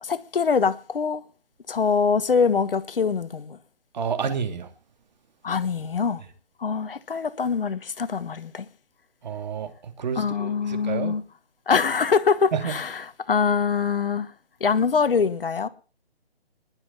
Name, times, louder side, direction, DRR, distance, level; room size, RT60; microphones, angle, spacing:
voice 1, 0.0-1.2 1.7-3.6 5.4-6.2 6.6-8.7 10.1-11.2 11.7-14.3 14.6-15.7, left 5 dB, 60° left, 1.4 m, -24 dB
voice 2, 3.9-4.7 9.2-9.7 10.0-11.2 12.5-12.7, right 6 dB, 45° right, 2.7 m, -29 dB
20.5 x 7.6 x 7.0 m
figure-of-eight pair, 155°, 32 cm